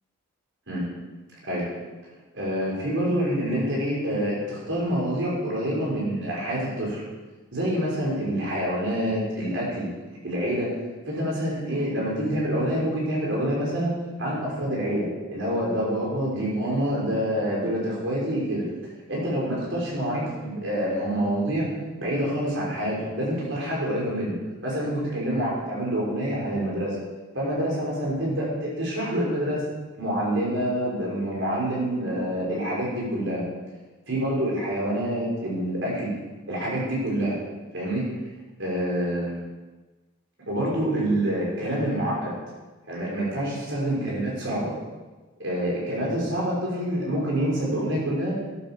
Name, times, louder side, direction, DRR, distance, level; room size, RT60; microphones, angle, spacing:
voice 1, 2.3-7.1 7.5-9.9 10.2-10.7 11.1-13.9 14.2-18.6 19.1-21.7 22.0-24.3 24.6-27.0 27.3-29.6 30.0-33.4 34.1-36.1 36.5-37.4 37.7-38.0 38.6-39.4 40.5-42.4 42.9-44.7 45.4-48.4, equal, 60° right, -5 dB, 5.6 m, -27 dB
12.0 x 10.0 x 6.8 m, 1.2 s
head